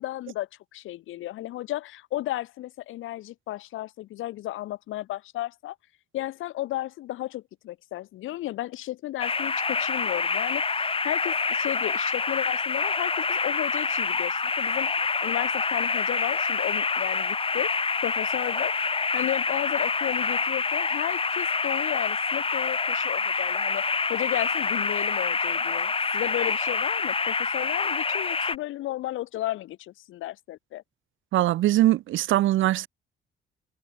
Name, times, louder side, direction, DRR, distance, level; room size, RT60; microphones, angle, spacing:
voice 1, 0.0-5.8 6.1-30.8, left 15 dB, 90° left, 4.7 m, -34 dB
sound 1, 9.2-28.6, left 4 dB, 25° left, 2.0 m, -27 dB
voice 2, 31.3-32.9, right 14 dB, 80° right, 1.2 m, -21 dB
cardioid pair, 90°, 20 cm